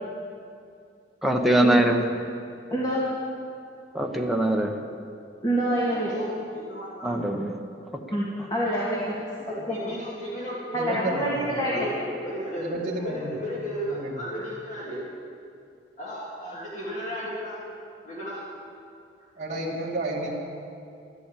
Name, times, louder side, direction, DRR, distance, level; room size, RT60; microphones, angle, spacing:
voice 1, 1.2-2.0 3.9-4.8 7.0-7.5, right 1 dB, ahead, 1 dB, 1.0 m, -22 dB
voice 2, 2.7-3.0 5.4-6.1 8.1-9.2 9.7-9.8 10.7-11.9, equal, 20° left, -6 dB, 2.2 m, -26 dB
voice 3, 5.9-7.2 9.4-10.8 11.1-11.3 11.7-15.0 16.0-17.6 18.0-18.4, equal, 40° left, -6 dB, 2.6 m, -34 dB
voice 4, 10.7-11.6 12.6-13.3 13.6-14.2 19.4-20.3, right 2 dB, 40° right, -7 dB, 2.3 m, -31 dB
13.0 x 11.5 x 8.3 m, 2.5 s
head